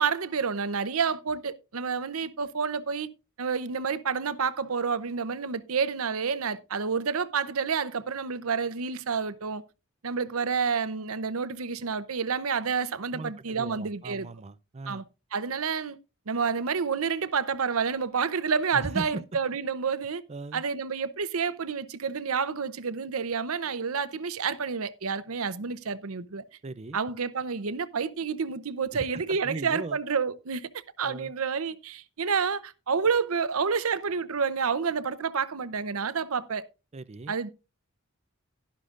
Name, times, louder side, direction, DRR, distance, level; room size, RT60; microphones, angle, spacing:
voice 1, 0.0-3.1 3.4-9.6 10.0-14.3 14.9-15.0 15.3-16.0 16.3-20.2 20.5-26.4 26.9-30.7 31.0-36.6 37.3-37.5, right 5 dB, 80° right, 0.7 m, -29 dB
voice 2, 13.1-15.0 18.7-19.2 20.3-20.6 26.6-27.0 28.9-30.0 31.0-31.3 36.9-37.3, right 3 dB, 30° right, 0.4 m, -38 dB
11.5 x 11.5 x 2.5 m
head